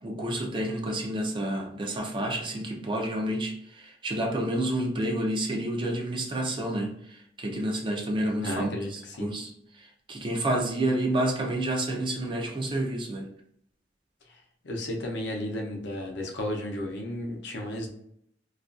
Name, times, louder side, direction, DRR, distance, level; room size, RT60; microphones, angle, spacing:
voice 1, 0.0-9.5 9.8-13.3, right 1 dB, 25° right, 1 dB, 0.4 m, -29 dB
voice 2, 8.4-9.3 14.6-17.9, left 1 dB, 70° left, 1 dB, 0.6 m, -33 dB
2.3 x 2.2 x 2.5 m, 0.72 s
head